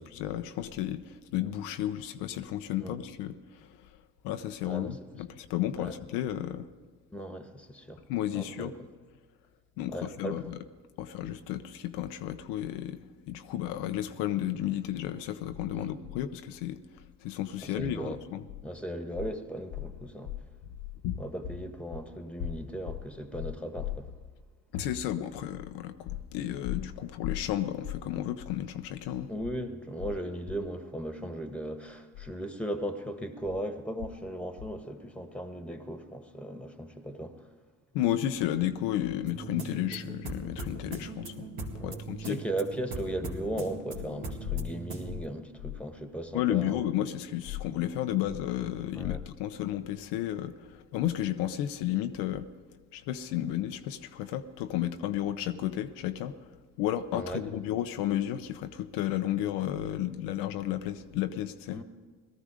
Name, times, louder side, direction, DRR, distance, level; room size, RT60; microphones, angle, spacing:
voice 1, 0.0-3.9 4.2-6.7 8.1-8.7 9.8-10.6 11.0-16.8 17.2-18.4 21.0-21.2 24.7-29.3 37.9-41.5 41.8-42.4 46.3-52.5 52.9-56.4 56.8-61.8, left 12 dB, 80° left, 8 dB, 0.7 m, -32 dB
voice 2, 4.6-5.0 5.8-5.9 7.1-8.0 8.3-8.7 9.9-10.4 15.7-15.9 17.6-18.2 18.6-20.3 21.2-24.1 29.3-37.5 41.8-46.8 48.9-49.2 57.1-57.6 61.7-61.8, right 1 dB, 5° left, 7 dB, 1.5 m, -37 dB
sound 1, 39.3-45.2, right 2 dB, 60° right, 2.2 m, -40 dB
18.0 x 13.0 x 5.0 m, 1.4 s
hypercardioid pair, 50°, 41 cm